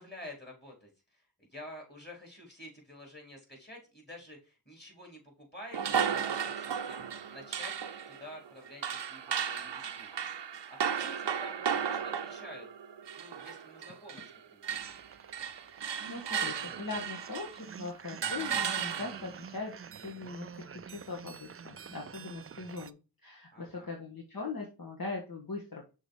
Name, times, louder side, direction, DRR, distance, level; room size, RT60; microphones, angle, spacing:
voice 1, 0.0-7.7 8.1-12.7 13.1-14.7 23.5-23.9, left 1 dB, 25° left, 0 dB, 4.0 m, -50 dB
sound 1, 5.7-14.4 14.6-17.7 18.2-19.4, right 7 dB, 85° right, 0.7 m, -35 dB
sound 2, 14.8-22.9, right 7 dB, 35° right, 0.4 m, -48 dB
voice 2, 15.7-25.8, left 3 dB, 55° left, -1 dB, 1.6 m, -41 dB
6.3 x 4.0 x 4.8 m, 0.31 s
cardioid pair, 45°, 41 cm